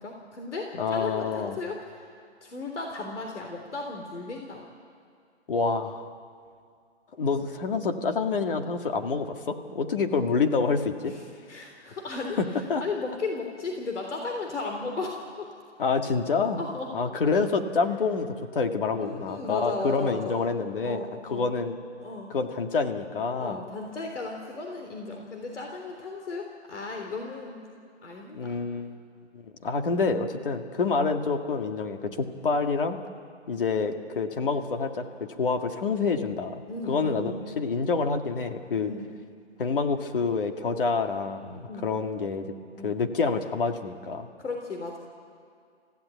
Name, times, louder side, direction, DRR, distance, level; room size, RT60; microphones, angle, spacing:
voice 1, 0.0-2.1 2.4-4.6 11.1-11.2 11.5-12.4 12.8-15.5 16.6-16.9 19.0-20.4 20.7-21.5 22.0-22.3 23.4-27.6 28.0-28.4 36.7-37.4 38.8-39.0 41.7-41.9 42.8-42.9 44.4-45.0, left 3 dB, 80° left, 2 dB, 3.6 m, -35 dB
voice 2, 0.8-1.6 5.5-6.0 7.2-11.1 12.4-12.8 15.8-16.6 16.9-21.7 22.3-23.6 28.3-29.0 29.3-33.0 33.5-38.9 39.6-42.5 42.8-44.3, left 4 dB, 50° left, 5 dB, 2.0 m, -27 dB
29.5 x 16.0 x 9.3 m, 2.2 s
hypercardioid pair, 175°, 35 cm